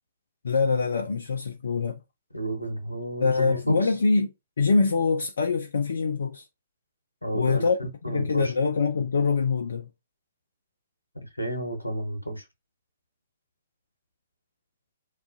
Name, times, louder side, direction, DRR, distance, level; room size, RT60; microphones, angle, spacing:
voice 1, 0.4-2.0 3.2-6.5 7.3-7.8 8.1-9.9, left 4 dB, 60° left, 0.3 m, -24 dB
voice 2, 2.3-3.9 7.2-8.5 11.1-12.4, right 1 dB, 85° left, 0.7 m, -31 dB
2.3 x 2.1 x 2.5 m
figure-of-eight pair, 120°, 0 cm